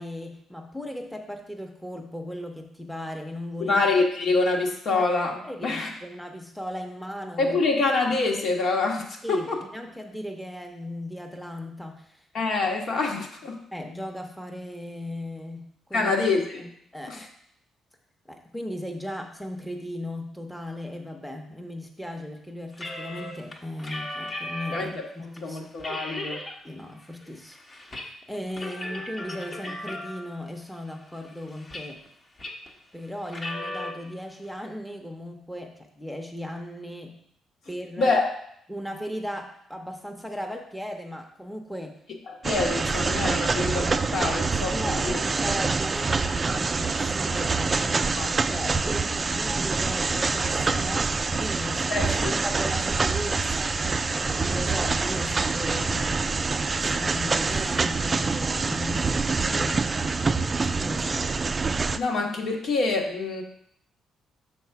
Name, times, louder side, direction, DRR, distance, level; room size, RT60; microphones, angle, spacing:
voice 1, 0.0-3.8 4.9-5.1 5.4-7.6 9.2-12.2 13.7-16.1 16.9-17.3 18.3-25.6 26.6-27.6 27.9-32.0 32.9-37.2 37.7-38.2 38.7-42.0 44.7-53.8 54.2-56.5 56.9-59.9 60.7-61.2, equal, ahead, 2 dB, 0.9 m, -37 dB
voice 2, 3.6-5.9 7.4-9.6 12.3-13.6 15.9-16.7 17.1-17.2 24.7-24.9 25.4-26.4 38.0-38.3 42.3-45.2 48.1-48.3 51.9-52.3 61.9-63.4, left 3 dB, 65° left, 0 dB, 1.4 m, -26 dB
sound 1, 22.7-25.0 25.4-25.5 25.8-26.6 26.9-28.1 28.3-30.4 30.9-32.1 32.4-32.7 33.2-33.9, left 1 dB, 35° left, 1.1 m, -36 dB
sound 2, 42.4-62.0, right 4 dB, 30° right, 0.3 m, -26 dB
6.2 x 4.1 x 5.8 m, 0.69 s
cardioid pair, 90°, 0 cm